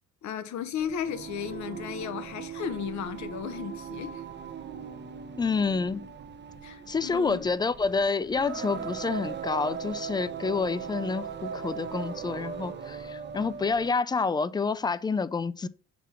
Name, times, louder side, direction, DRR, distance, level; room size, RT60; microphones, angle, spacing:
voice 1, 0.2-4.2 6.6-7.5, left 8 dB, 70° left, 0.8 m, -35 dB
Singing, 0.8-14.0, right 7 dB, 35° right, 0.7 m, -39 dB
voice 2, 5.4-6.0 6.9-15.7, left 4 dB, 15° left, 0.3 m, -28 dB
5.9 x 3.5 x 5.7 m
cardioid pair, 90°, 30 cm